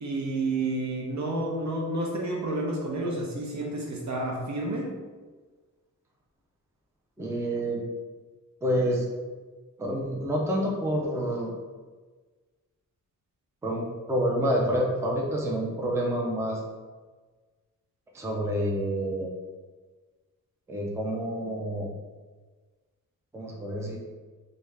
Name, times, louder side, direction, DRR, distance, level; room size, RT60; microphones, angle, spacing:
voice 1, 0.0-4.9, right 2 dB, 55° right, -1 dB, 0.8 m, -30 dB
voice 2, 7.2-7.8 8.6-9.0 9.8-11.5 13.6-16.6 18.1-19.3 20.7-21.9 23.3-24.0, equal, 10° right, -2 dB, 0.5 m, -28 dB
3.4 x 2.7 x 3.3 m, 1.4 s
wide cardioid pair, 120°, 33 cm